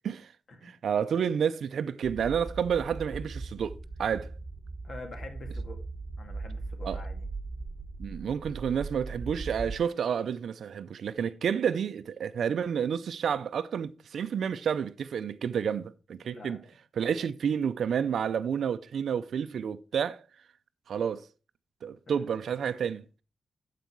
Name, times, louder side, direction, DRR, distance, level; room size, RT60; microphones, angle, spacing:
voice 1, 0.6-4.3 6.8-7.0 8.0-16.6 17.0-20.2 20.9-21.3 21.8-23.0, right 7 dB, 75° right, 0.6 m, -30 dB
sound 1, 2.0-9.8, right 3 dB, 25° right, 1.3 m, -39 dB
voice 2, 4.8-5.8 6.2-7.3 16.2-16.6 22.1-22.3, left 2 dB, 45° left, 1.9 m, -46 dB
9.2 x 7.6 x 4.6 m
wide cardioid pair, 175°, 0 cm